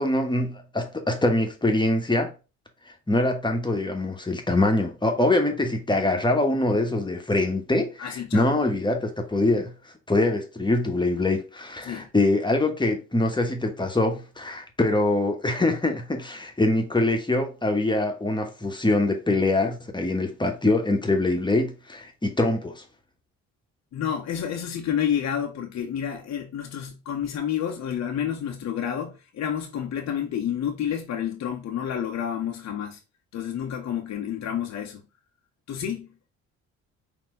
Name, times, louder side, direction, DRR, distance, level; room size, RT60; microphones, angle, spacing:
voice 1, 0.0-2.3 3.1-9.7 10.1-22.8, left 2 dB, 15° left, 1.2 m, -24 dB
voice 2, 8.0-8.5 11.8-12.1 23.9-33.0 33.3-35.0 35.7-36.1, left 9 dB, 55° left, 0.9 m, -29 dB
4.4 x 2.9 x 3.7 m
supercardioid pair, 70°, 32 cm